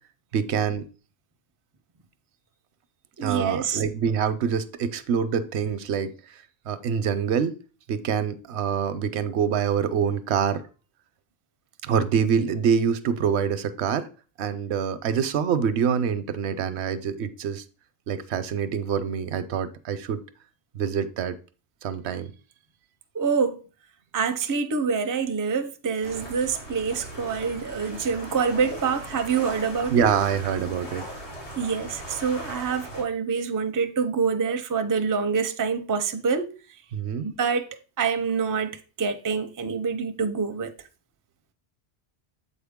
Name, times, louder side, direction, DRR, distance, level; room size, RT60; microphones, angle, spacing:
voice 1, 0.3-0.8 3.2-6.1 6.7-7.5 7.9-10.6 11.8-14.1 14.4-17.6 18.1-20.2 20.7-21.3 21.8-22.3 29.9-31.0 36.9-37.3, right 7 dB, 80° right, 0.9 m, -25 dB
voice 2, 3.2-3.8 23.1-23.6 24.1-30.1 31.6-36.5 37.2-37.7 38.0-40.7, right 5 dB, 30° right, 0.4 m, -26 dB
sound 1, 26.0-33.0, right 1 dB, 80° left, 2.4 m, -39 dB
7.4 x 4.1 x 3.5 m
omnidirectional pair, 1.1 m